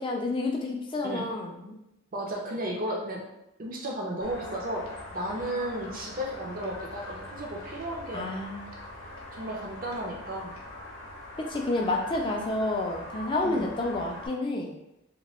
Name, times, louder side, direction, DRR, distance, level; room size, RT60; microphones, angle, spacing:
voice 1, 0.0-1.8 8.1-8.7 11.4-14.8, left 2 dB, 25° left, 1 dB, 0.3 m, -29 dB
voice 2, 2.1-3.2 3.6-8.3 9.3-10.5 13.4-13.6, right 1 dB, 40° right, -1 dB, 0.5 m, -34 dB
sound 1, 4.2-14.3, left 1 dB, 65° left, 0.7 m, -43 dB
2.9 x 2.2 x 2.9 m, 0.87 s
head